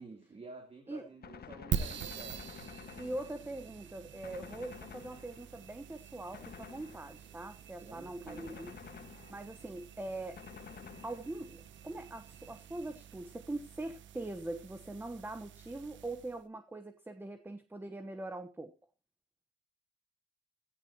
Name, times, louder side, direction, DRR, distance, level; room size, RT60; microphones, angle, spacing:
voice 1, 0.0-2.4 7.8-8.8, right 3 dB, 30° right, 2 dB, 3.3 m, -50 dB
Gunshot gunfire, 1.2-3.7 4.2-5.6 6.3-7.4 8.3-9.7 10.4-11.6, left 7 dB, 50° left, 1.6 m, -50 dB
sound 1, 1.7-16.4, right 8 dB, 70° right, 1.2 m, -45 dB
voice 2, 3.0-8.7 9.3-10.4 11.0-18.7, right 2 dB, 10° right, 10 dB, 1.1 m, -42 dB
16.5 x 14.0 x 2.9 m, 0.28 s
cardioid pair, 90°, 20 cm